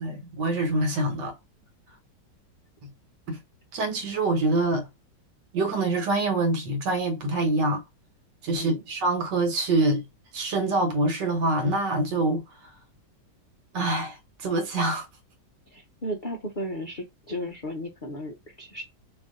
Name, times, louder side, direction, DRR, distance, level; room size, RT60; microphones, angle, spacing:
voice 1, 0.0-1.3 3.3-3.4 3.7-4.9 5.5-7.8 8.4-10.0 10.3-12.4 13.7-15.1, right 2 dB, 75° right, 1.6 m, -25 dB
voice 2, 8.5-8.8 15.7-18.8, equal, 60° left, 0.5 m, -35 dB
3.0 x 2.7 x 3.6 m
omnidirectional pair, 1.9 m